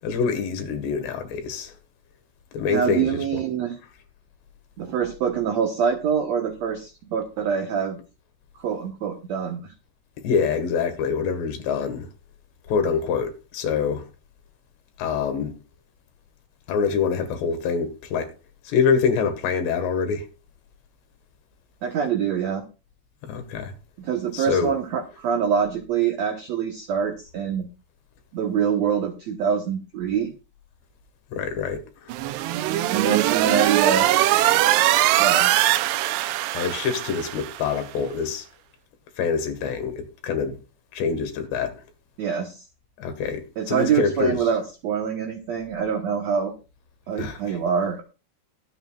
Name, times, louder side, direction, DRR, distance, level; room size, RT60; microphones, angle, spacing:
voice 1, 0.0-1.7 2.5-3.4 10.2-12.1 12.7-14.1 15.0-15.5 16.7-18.3 18.7-20.3 23.2-23.7 24.3-24.7 31.3-32.1 36.5-38.5 39.2-40.6 40.9-41.7 43.0-44.4 47.2-47.6, left 6 dB, 85° left, 4.0 m, -25 dB
voice 2, 2.7-3.7 4.8-8.0 8.6-9.7 21.8-22.6 24.0-27.7 28.3-30.3 32.9-34.1 35.2-35.5 42.2-42.6 43.6-46.5 47.1-48.0, right 7 dB, 65° right, 1.8 m, -25 dB
sound 1, 32.1-37.7, right 14 dB, 80° right, 2.7 m, -21 dB
22.5 x 8.2 x 2.4 m
omnidirectional pair, 4.8 m